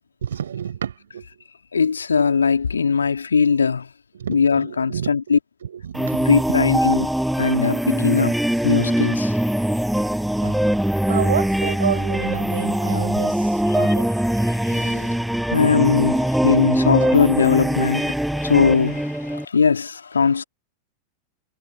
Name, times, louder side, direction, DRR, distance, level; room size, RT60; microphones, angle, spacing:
voice 1, 0.2-1.4 4.1-5.1 5.6-6.6 10.4-10.6 11.1-14.1 15.0-15.1 17.0-17.2, right 8 dB, 65° right, 7.9 m, -30 dB
voice 2, 1.7-3.9 4.3-5.4 6.3-7.1 7.4-8.3 8.6-9.4 14.4-15.1 15.5-20.4, left 5 dB, 75° left, 2.6 m, -20 dB
sound 1, 5.9-19.5, equal, ahead, 7.6 m, -22 dB
figure-of-eight pair, 90°, 0 cm